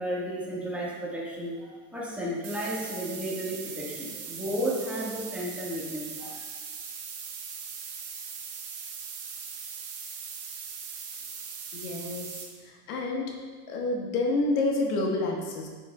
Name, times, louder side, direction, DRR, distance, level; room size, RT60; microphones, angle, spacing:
voice 1, 0.0-6.4, equal, 5° right, -6 dB, 1.7 m, -33 dB
sound 1, 2.4-12.4, right 6 dB, 30° right, 1.3 m, -40 dB
voice 2, 11.7-13.3 13.7-15.7, left 2 dB, 70° left, 0 dB, 1.5 m, -29 dB
9.0 x 6.9 x 2.4 m, 1.5 s
supercardioid pair, 120°, 47 cm